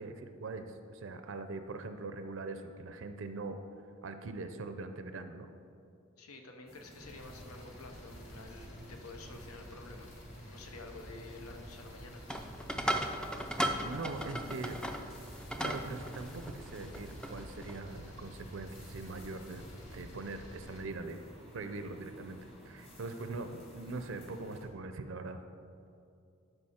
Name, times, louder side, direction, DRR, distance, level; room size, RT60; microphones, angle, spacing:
voice 1, 0.0-3.6 4.0-5.5 13.8-14.8 15.6-19.7 19.9-21.2 21.5-25.4, right 3 dB, 60° right, 8 dB, 0.5 m, -42 dB
voice 2, 6.2-10.1 10.5-12.2, left 3 dB, 85° left, 4 dB, 1.0 m, -50 dB
sound 1, 6.7-24.6, equal, 25° left, 1.2 m, -55 dB
sound 2, 7.0-20.8, equal, 60° left, 2.2 m, -50 dB
sound 3, 12.3-17.8, right 1 dB, 5° left, 0.3 m, -37 dB
12.5 x 4.9 x 4.3 m, 2.5 s
head